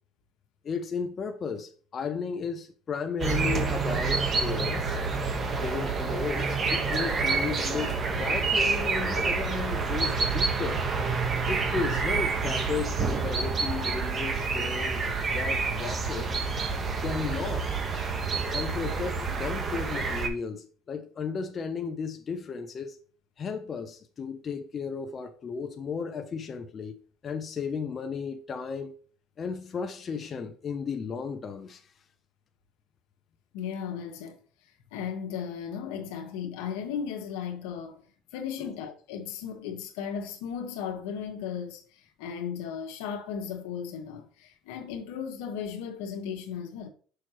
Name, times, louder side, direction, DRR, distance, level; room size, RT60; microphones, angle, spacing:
voice 1, 0.6-5.0 5.6-10.8 11.5-16.3 17.0-17.7 18.5-23.0 23.4-27.0 27.2-28.9 29.4-31.9, left 5 dB, 35° left, 0.6 m, -34 dB
sound 1, 3.2-20.3, right 4 dB, 35° right, 1.1 m, -28 dB
voice 2, 33.5-34.4 34.9-38.0 38.3-46.9, left 7 dB, 85° left, 1.3 m, -36 dB
6.3 x 6.0 x 3.0 m
supercardioid pair, 105°, 0 cm